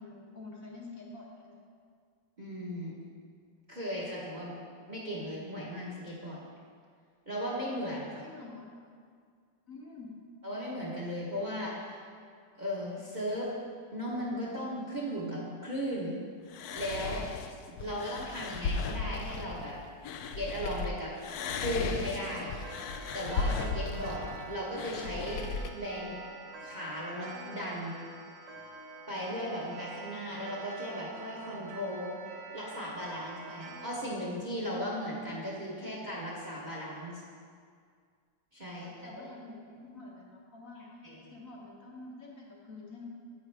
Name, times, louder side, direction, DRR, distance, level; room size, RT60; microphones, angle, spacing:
voice 1, 0.0-1.6 8.2-8.7 9.7-10.1 38.8-43.1, left 3 dB, 55° left, -3 dB, 1.2 m, -48 dB
voice 2, 2.4-3.0 3.7-4.5 4.9-6.4 7.3-8.2 10.4-12.0 12.6-13.5 13.9-16.2 16.7-17.2 17.7-19.8 20.3-21.1 21.6-22.5 23.1-25.4 25.7-26.2 26.6-28.0 29.1-32.2 32.5-37.2 38.5-39.3 41.0-41.2, equal, 30° right, -5 dB, 1.0 m, -36 dB
sound 1, 16.5-20.9 21.2-25.7, left 4 dB, 70° left, 0.9 m, -36 dB
Clock, 21.9-34.0, right 3 dB, 65° right, 1.5 m, -47 dB
9.5 x 7.9 x 3.3 m, 2.1 s
omnidirectional pair, 2.0 m